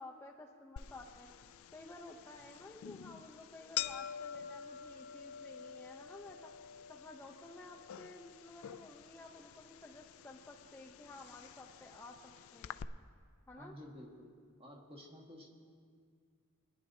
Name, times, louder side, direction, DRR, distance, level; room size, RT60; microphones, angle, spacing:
voice 1, 0.0-1.3 1.7-6.5 6.9-12.8 13.5-13.7, left 2 dB, 10° left, 0 dB, 0.6 m, -53 dB
sound 1, 0.8-12.8, left 9 dB, 70° left, 0.4 m, -47 dB
voice 2, 13.6-14.3 14.6-15.6, equal, 25° right, -1 dB, 1.6 m, -52 dB
23.0 x 10.5 x 2.7 m, 2.1 s
head